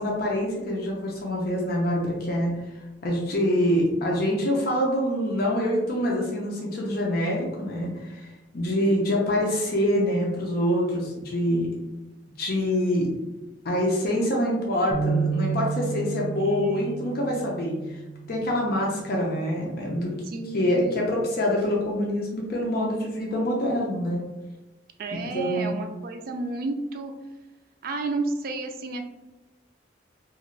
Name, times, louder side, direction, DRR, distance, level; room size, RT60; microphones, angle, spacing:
voice 1, 0.0-2.6 3.0-8.3 8.5-11.7 12.4-13.1 13.6-18.0 18.3-20.1 20.5-24.2 25.2-25.7, equal, 55° left, -2 dB, 0.6 m, -25 dB
sound 1, 14.9-21.2, right 5 dB, 5° left, 0.6 m, -33 dB
voice 2, 16.4-17.4 20.3-21.1 25.0-27.1 27.8-29.1, right 3 dB, 55° right, 5 dB, 0.4 m, -32 dB
2.5 x 2.4 x 3.0 m, 1.1 s
head